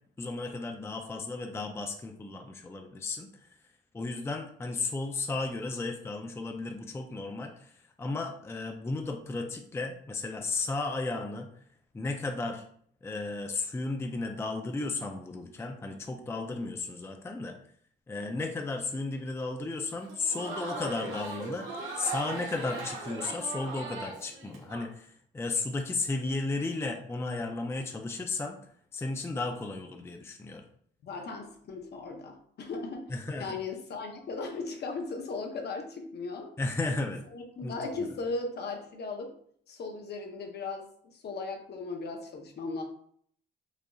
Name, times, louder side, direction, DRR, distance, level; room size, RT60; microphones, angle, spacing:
voice 1, 0.2-3.6 3.9-11.7 11.9-12.7 13.0-17.6 18.1-28.6 28.9-30.6 33.1-33.6 36.6-37.2 37.6-38.1, left 3 dB, 15° left, 3 dB, 0.4 m, -34 dB
Crowd, 20.0-24.8, right 3 dB, 85° right, 1.3 m, -39 dB
voice 2, 31.0-33.1 33.4-36.5 37.3-39.3 39.7-42.8, left 3 dB, 55° left, 3 dB, 0.8 m, -37 dB
4.9 x 2.6 x 2.3 m, 0.62 s
cardioid pair, 90°, 20 cm